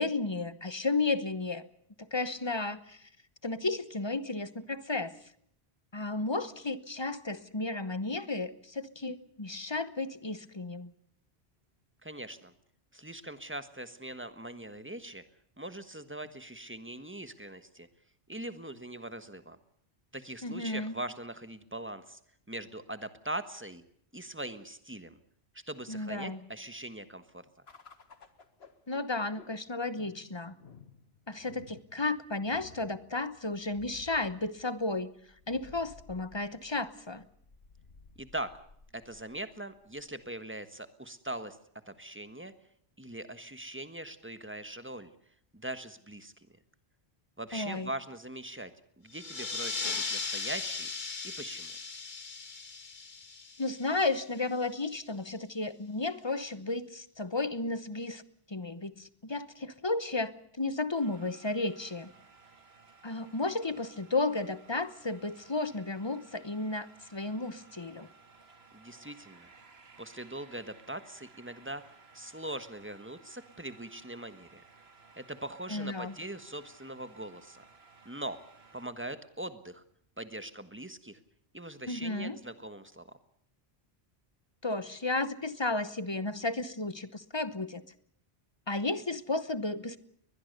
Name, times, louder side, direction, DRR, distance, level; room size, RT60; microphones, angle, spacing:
voice 1, 0.0-1.7 2.0-3.0 3.4-5.2 5.9-10.9 20.4-20.9 25.9-26.4 28.9-30.5 31.3-35.1 35.5-37.2 47.5-47.9 53.6-58.2 58.5-62.1 63.0-68.1 75.7-76.1 81.9-82.4 84.6-87.8 88.7-90.0, left 3 dB, 25° left, 14 dB, 1.0 m, -33 dB
voice 2, 12.0-12.5 12.9-15.2 15.6-17.9 18.3-19.6 20.1-22.2 22.5-23.8 24.1-25.2 25.5-27.4 38.2-38.5 38.9-41.6 41.9-42.5 43.0-45.1 45.5-46.3 47.4-48.7 49.0-50.9 51.2-51.7 68.7-69.5 70.0-71.8 72.1-74.6 75.2-77.6 78.0-78.4 78.7-79.8 80.2-81.2 81.5-83.1, right 1 dB, 10° right, 10 dB, 1.4 m, -41 dB
sound 1, 27.7-40.3, left 4 dB, 75° left, 2.0 m, -56 dB
sound 2, 49.1-54.3, left 4 dB, 50° left, 1.5 m, -37 dB
sound 3, 60.9-78.9, right 4 dB, 70° right, 2.0 m, -58 dB
21.5 x 21.5 x 6.8 m, 0.67 s
omnidirectional pair, 1.1 m